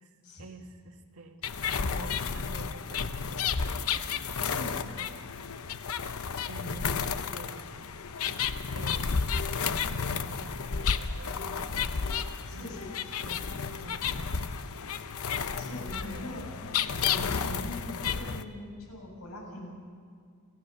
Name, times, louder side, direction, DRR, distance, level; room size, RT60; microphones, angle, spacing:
voice 1, 0.0-1.5 1.8-4.1 6.5-7.7 8.7-9.4 9.6-12.2 12.5-12.8 13.2-14.5 15.8-16.4, right 2 dB, 70° right, 4 dB, 2.0 m, -48 dB
sound 1, 1.4-18.4, left 6 dB, 70° left, 0.8 m, -32 dB
voice 2, 4.4-4.9 12.4-12.9 15.5-16.5 16.8-19.8, left 1 dB, 90° left, 0 dB, 7.0 m, -42 dB
28.0 x 15.5 x 6.9 m, 2.1 s
head